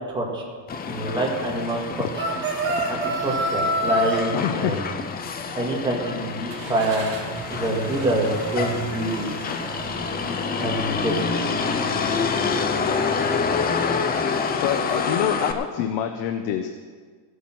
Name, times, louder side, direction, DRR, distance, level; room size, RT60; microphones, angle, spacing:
voice 1, 0.1-0.4 0.9-1.8 2.9-4.9 5.5-7.0 7.5-9.3 10.6-11.3, right 1 dB, 10° right, -3 dB, 2.1 m, -26 dB
Motor vehicle (road), 0.7-15.5, left 5 dB, 20° left, 0.5 m, -27 dB
sound 1, 2.1-4.2, right 2 dB, 25° right, 2.0 m, -25 dB
sound 2, 3.3-3.5 3.9-4.0 6.5-13.3, right 3 dB, 45° right, 2.1 m, -36 dB
voice 2, 4.3-4.8 6.6-6.7 14.6-16.7, left 10 dB, 65° left, 6 dB, 1.0 m, -26 dB
15.5 x 8.4 x 6.2 m, 1.5 s
cardioid pair, 180°, 46 cm